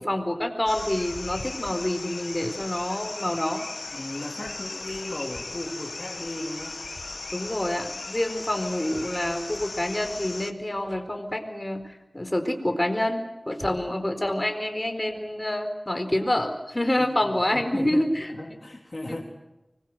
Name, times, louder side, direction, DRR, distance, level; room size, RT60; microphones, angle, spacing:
voice 1, 0.0-3.7 7.3-18.3 19.1-19.2, left 1 dB, 30° left, 6 dB, 4.3 m, -27 dB
sound 1, 0.7-10.5, left 3 dB, 90° left, 1.5 m, -37 dB
voice 2, 3.9-6.8 17.2-19.2, left 1 dB, 50° left, 2 dB, 3.3 m, -36 dB
25.0 x 21.5 x 8.0 m, 0.99 s
wide cardioid pair, 45°, 0 cm